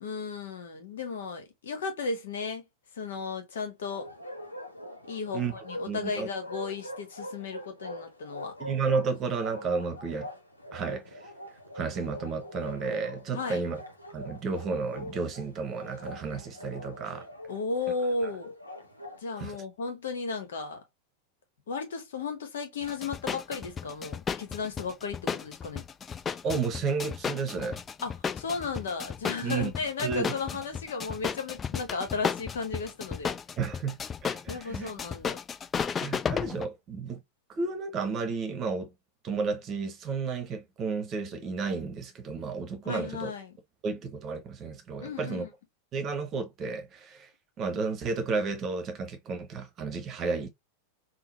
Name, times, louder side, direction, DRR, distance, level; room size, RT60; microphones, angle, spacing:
voice 1, 0.0-2.6 2.9-4.1 5.1-8.5 13.3-13.6 17.5-18.5 19.2-20.8 21.7-25.8 28.0-33.4 34.5-35.4 42.8-43.5 45.0-45.5, left 4 dB, 60° left, 1.0 m, -35 dB
Bark, 3.9-19.2, left 1 dB, 85° left, 0.8 m, -43 dB
voice 2, 5.3-6.3 8.6-10.3 10.7-11.2 11.7-13.8 14.1-17.3 19.4-19.6 26.4-27.8 29.4-29.7 30.0-30.3 33.6-34.9 36.0-37.2 37.5-38.9 39.2-43.3 43.8-45.5 45.9-47.3 47.6-50.5, right 4 dB, 30° right, 0.9 m, -32 dB
sound 1, 22.8-36.7, left 7 dB, 20° left, 0.3 m, -34 dB
3.7 x 2.0 x 2.9 m
figure-of-eight pair, 90°, 0 cm